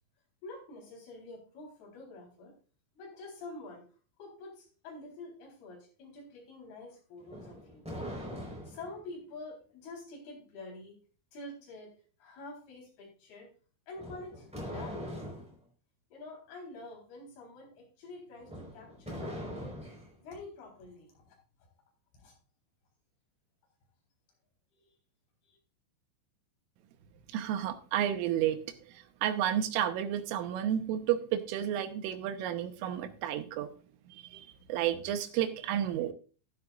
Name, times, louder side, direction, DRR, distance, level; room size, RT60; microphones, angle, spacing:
voice 1, 0.4-2.5 3.0-3.9 4.2-7.9 8.6-11.0 11.3-11.9 12.2-13.5 13.9-15.1 16.1-19.8 20.2-21.4 22.1-22.3 24.7-24.9 25.5-25.6, left 2 dB, 55° left, -1 dB, 5.8 m, -47 dB
sound 1, 7.2-9.0 14.0-15.5 18.4-20.1, equal, ahead, 3.7 m, -42 dB
voice 2, 27.3-28.6 28.9-33.7 34.1-36.1, right 10 dB, 90° right, 8 dB, 3.6 m, -31 dB
13.0 x 11.0 x 2.5 m, 0.38 s
omnidirectional pair, 5.6 m